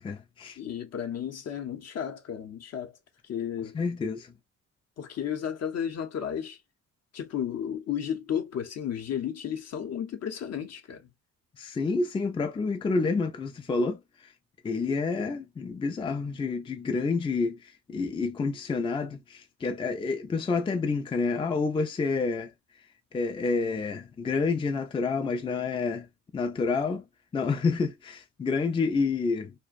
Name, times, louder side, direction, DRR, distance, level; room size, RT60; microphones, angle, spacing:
voice 1, 0.0-0.6 3.7-4.3 11.6-14.0 14.6-17.6 17.9-22.5 23.1-26.1 26.3-27.0 27.3-29.5, left 4 dB, 20° left, 0.4 m, -28 dB
voice 2, 0.6-2.9 3.2-3.8 5.0-6.6 7.1-11.1, left 9 dB, 55° left, 0.7 m, -33 dB
2.4 x 2.1 x 2.4 m
cardioid pair, 90°, 30 cm